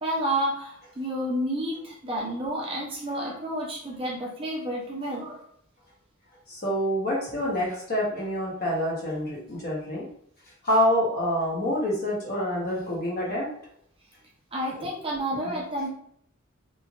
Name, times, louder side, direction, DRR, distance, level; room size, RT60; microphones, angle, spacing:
voice 1, 0.0-5.5 14.5-15.9, right 1 dB, 25° right, -3 dB, 0.7 m, -30 dB
voice 2, 6.5-10.1 10.6-13.5 14.8-14.9 15.4-15.5, equal, 45° left, -4 dB, 0.9 m, -27 dB
3.2 x 2.4 x 2.4 m, 0.68 s
head